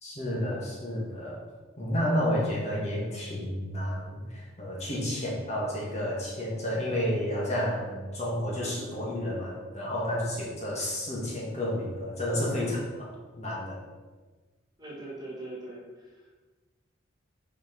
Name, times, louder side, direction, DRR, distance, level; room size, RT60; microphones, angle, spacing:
voice 1, 0.0-1.4 1.8-13.8, equal, 35° left, -5 dB, 1.8 m, -31 dB
voice 2, 14.8-16.4, right 1 dB, 20° right, -5 dB, 1.8 m, -42 dB
6.4 x 4.9 x 6.2 m, 1.3 s
head